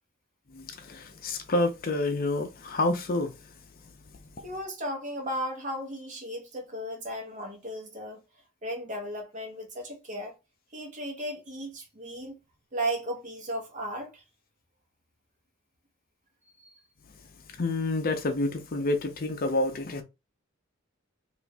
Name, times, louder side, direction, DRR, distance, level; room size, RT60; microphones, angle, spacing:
voice 1, 0.5-3.3 17.6-20.0, left 2 dB, 45° left, 0.6 m, -28 dB
voice 2, 4.4-8.2 8.6-10.4 10.7-12.4 12.7-14.2 16.5-16.7, right 1 dB, 40° right, 1.0 m, -35 dB
3.0 x 2.5 x 3.4 m
head